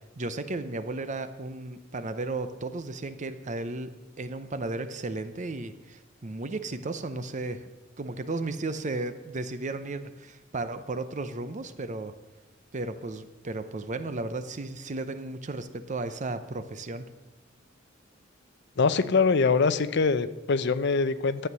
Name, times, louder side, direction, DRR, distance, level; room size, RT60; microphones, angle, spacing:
voice 1, 0.2-3.9 4.2-7.6 8.0-12.1 12.7-17.0, right 2 dB, 40° right, 11 dB, 0.7 m, -34 dB
voice 2, 18.8-21.5, left 4 dB, 60° left, 13 dB, 0.6 m, -23 dB
12.5 x 8.1 x 6.8 m, 1.1 s
head